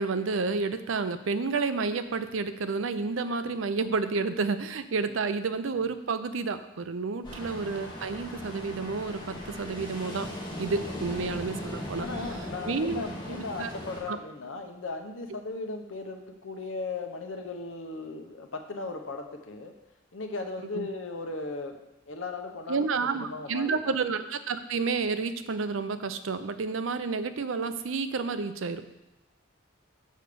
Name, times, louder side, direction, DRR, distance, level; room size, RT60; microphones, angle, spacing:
voice 1, 0.0-10.3 10.6-12.1 12.6-13.0 13.3-13.7 14.1-14.2 20.7-20.9 22.7-28.8, right 4 dB, 90° right, 11 dB, 0.6 m, -30 dB
Ocean, 7.2-14.0, left 1 dB, 25° left, 2.1 m, -38 dB
voice 2, 12.0-19.7 20.1-21.7 22.1-22.8 23.1-23.7, left 3 dB, 85° left, 5 dB, 1.0 m, -37 dB
6.5 x 5.1 x 6.7 m, 0.98 s
head